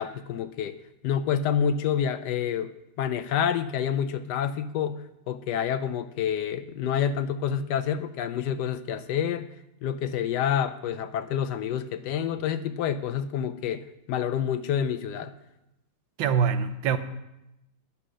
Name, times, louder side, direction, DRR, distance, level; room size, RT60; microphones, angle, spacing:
voice 1, 0.0-9.5 9.8-15.3, left 8 dB, 75° left, 1.1 m, -28 dB
voice 2, 16.2-17.0, right 7 dB, 85° right, 1.5 m, -24 dB
10.5 x 7.0 x 6.2 m
omnidirectional pair, 2.0 m